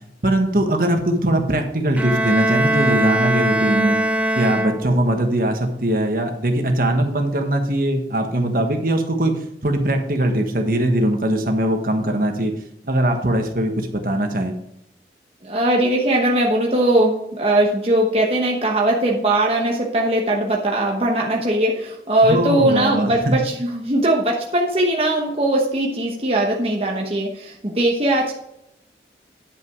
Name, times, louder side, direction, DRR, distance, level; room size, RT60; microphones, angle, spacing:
voice 1, 0.2-4.0 4.3-9.3 9.6-12.5 12.8-14.5 22.2-23.4, right 1 dB, 50° right, 4 dB, 1.4 m, -21 dB
Bowed string instrument, 2.0-5.2, right 1 dB, 10° right, 0.5 m, -21 dB
voice 2, 15.4-28.4, right 1 dB, 35° right, -1 dB, 1.0 m, -20 dB
10.5 x 6.0 x 4.8 m, 0.80 s
head